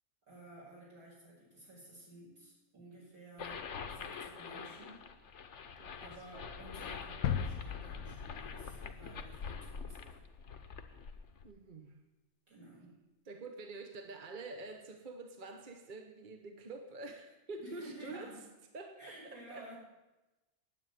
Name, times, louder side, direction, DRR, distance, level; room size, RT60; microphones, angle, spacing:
voice 1, 0.3-5.1 6.0-10.2 12.5-13.0 17.6-18.5 19.0-19.8, right 1 dB, 65° right, -6 dB, 6.2 m, -53 dB
sound 1, 3.4-11.5, left 5 dB, 55° left, 1.2 m, -45 dB
voice 2, 5.8-6.1 11.4-12.0 13.2-18.3 18.7-19.7, right 3 dB, 35° right, 4 dB, 1.1 m, -47 dB
sound 2, 7.2-9.2 9.6-9.7, left 8 dB, 85° left, 1.2 m, -37 dB
9.6 x 8.6 x 9.1 m, 1.1 s
omnidirectional pair, 1.6 m